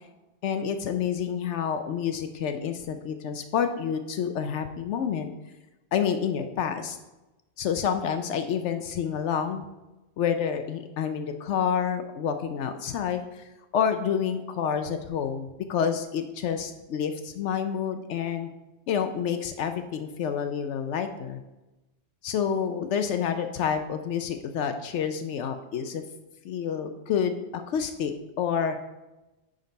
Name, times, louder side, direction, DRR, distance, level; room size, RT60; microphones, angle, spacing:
voice 1, 0.4-5.3 5.9-7.0 7.6-9.6 10.2-13.4 13.7-18.5 18.9-21.4 22.2-26.0 26.4-28.8, left 7 dB, 75° left, 7 dB, 0.9 m, -28 dB
9.5 x 3.9 x 5.2 m, 1.0 s
omnidirectional pair, 1.2 m